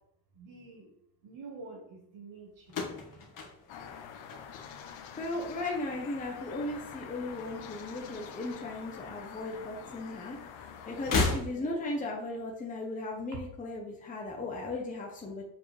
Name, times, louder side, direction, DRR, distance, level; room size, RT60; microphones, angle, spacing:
voice 1, 0.4-0.9 1.2-2.5 11.5-11.9, right 4 dB, 65° right, 0 dB, 1.6 m, -47 dB
sound 1, 2.6-5.0 5.3-5.9 6.9-8.0 8.2-8.3 9.5-9.6 10.9-12.0, left 3 dB, 40° left, 1.5 m, -34 dB
sound 2, 3.7-11.2, left 7 dB, 70° left, 1.0 m, -46 dB
voice 2, 5.2-10.4 10.9-15.4, left 2 dB, 15° left, -1 dB, 0.9 m, -36 dB
7.6 x 4.7 x 3.3 m, 0.75 s
cardioid pair, 150°, 48 cm